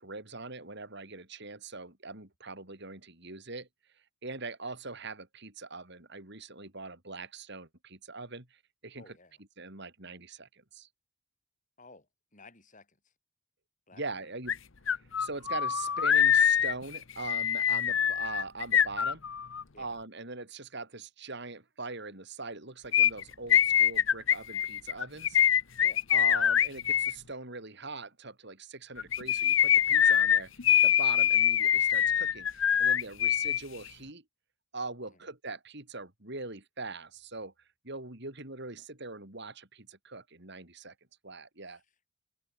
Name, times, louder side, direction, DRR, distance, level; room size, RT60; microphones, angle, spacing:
voice 1, 0.0-3.7 4.2-9.2 9.6-10.9 13.9-14.6 15.2-19.2 19.8-25.4 26.1-30.5 30.8-34.2 34.7-37.5 37.8-40.9 41.2-41.8, right 3 dB, 55° right, 4.3 m, -42 dB
voice 2, 9.0-9.4 11.8-13.0 13.9-14.0 19.7-20.0 25.8-26.1 41.7-41.8, left 3 dB, 35° left, 5.5 m, -55 dB
sound 1, 14.5-14.6 14.9-19.6 22.9-27.1 29.0-33.6 33.9-34.0, left 9 dB, 65° left, 0.9 m, -24 dB
open air
head